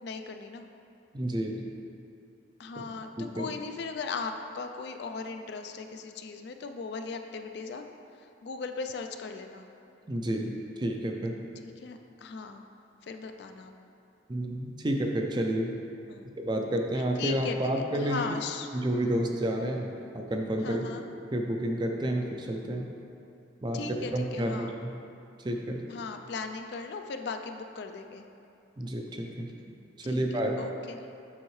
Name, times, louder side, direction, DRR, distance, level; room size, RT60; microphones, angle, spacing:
voice 1, 0.0-0.7 2.6-7.8 8.2-9.7 11.6-12.6 13.0-13.7 16.1-16.3 17.2-18.7 20.6-21.0 23.7-24.7 25.9-28.2 30.0-30.2 30.6-31.0, left 4 dB, 55° left, 6 dB, 0.3 m, -38 dB
voice 2, 1.1-1.7 3.2-3.5 10.1-11.4 14.3-15.8 16.4-18.3 18.7-20.9 21.3-22.9 23.6-24.9 25.4-25.8 28.8-29.5 30.0-30.6, right 1 dB, 20° right, 2 dB, 0.4 m, -30 dB
7.0 x 5.6 x 3.1 m, 2.6 s
head